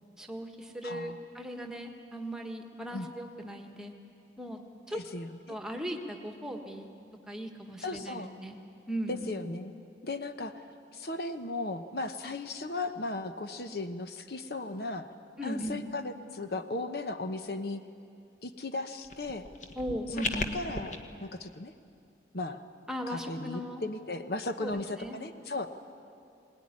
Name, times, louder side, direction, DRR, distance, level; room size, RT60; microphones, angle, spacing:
voice 1, 0.2-3.9 4.4-4.6 4.9-5.0 5.5-6.9 7.3-8.6 8.9-9.3 15.4-15.9 19.8-20.6 22.9-23.8 24.6-25.2, equal, 5° right, 3 dB, 1.5 m, -38 dB
voice 2, 0.8-1.2 2.9-3.1 4.9-5.6 7.8-8.3 9.1-9.7 10.0-10.5 10.9-15.1 15.4-17.8 18.4-19.4 20.5-21.7 22.3-22.6 23.1-25.7, left 2 dB, 60° left, 8 dB, 1.0 m, -36 dB
sound 1, 19.0-21.0, left 3 dB, 45° left, 1.3 m, -36 dB
21.0 x 19.5 x 9.8 m, 2.5 s
head